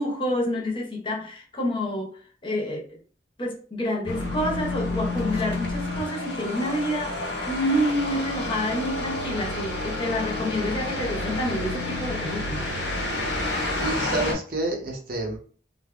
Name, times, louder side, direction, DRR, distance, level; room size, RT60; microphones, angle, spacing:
voice 1, 0.0-2.1 2.4-3.0 3.4-7.1 7.4-12.7, equal, 30° left, 0.6 m, -28 dB
sound 1, 4.1-14.3, left 2 dB, 80° left, 1.1 m, -29 dB
voice 2, 13.8-15.4, right 2 dB, 55° right, 0.7 m, -28 dB
3.3 x 2.1 x 2.3 m
head